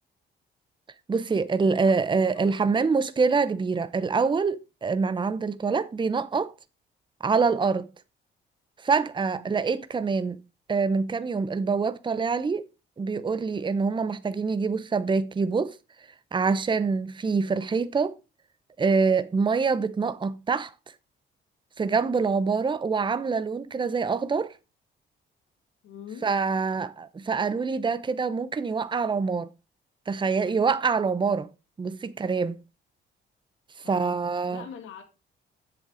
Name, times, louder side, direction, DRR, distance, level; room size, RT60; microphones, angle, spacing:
voice 1, 1.1-6.5 7.2-7.9 8.8-10.4 10.7-12.7 13.0-15.8 16.3-18.1 18.8-20.7 21.8-24.5 26.2-29.5 30.1-31.5 31.8-32.6 33.9-34.6, right 4 dB, 25° right, 0.7 m, -25 dB
voice 2, 1.6-2.9 5.7-6.0 9.2-9.6 25.8-26.3 33.8-35.0, left 8 dB, 80° left, 2.0 m, -45 dB
7.8 x 7.1 x 4.9 m
cardioid pair, 90°, 20 cm